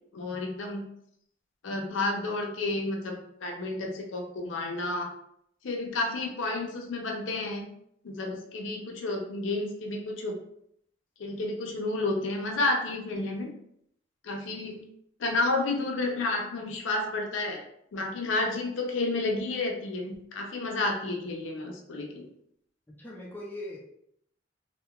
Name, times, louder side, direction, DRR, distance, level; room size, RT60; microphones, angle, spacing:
voice 1, 0.1-0.8 1.6-5.1 5.6-7.6 8.0-10.4 11.2-13.5 14.2-14.8 15.2-17.6 17.9-22.3, left 2 dB, 80° left, 2 dB, 0.5 m, -31 dB
voice 2, 22.9-23.8, left 1 dB, 10° left, -2 dB, 0.3 m, -40 dB
2.8 x 2.2 x 2.3 m, 0.70 s
head